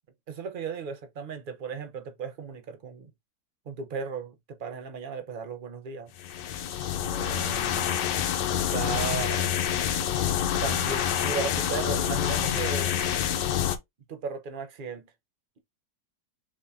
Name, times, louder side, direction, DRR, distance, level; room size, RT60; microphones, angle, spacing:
voice 1, 0.3-3.1 3.7-4.3 4.6-6.1 6.9-8.0 8.5-9.5 10.6-12.9 14.1-15.1, right 5 dB, 45° right, 0.7 m, -36 dB
sound 1, 6.2-13.8, left 9 dB, 90° left, 1.3 m, -27 dB
4.9 x 3.5 x 2.6 m
omnidirectional pair, 1.8 m